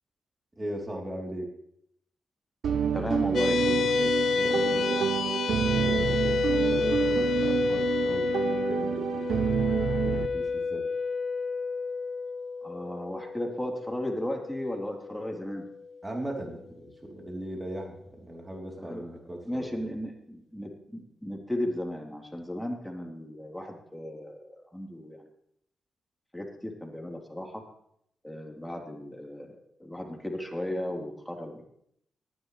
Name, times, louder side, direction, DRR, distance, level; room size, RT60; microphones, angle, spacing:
voice 1, 0.6-1.5 4.3-5.3 5.6-9.7 10.1-10.9 16.0-19.9, right 1 dB, 25° right, 0 dB, 3.6 m, -38 dB
sound 1, 2.6-10.3, right 8 dB, 70° right, 0.7 m, -28 dB
voice 2, 2.9-4.1 4.5-5.0 12.6-15.6 18.8-19.1 19.5-25.2 26.3-27.6 28.2-31.7, left 1 dB, 5° left, 0 dB, 3.9 m, -35 dB
sound 2, 3.3-16.0, left 5 dB, 65° left, 0.7 m, -30 dB
18.5 x 11.0 x 3.4 m, 0.70 s
supercardioid pair, 45°, 0 cm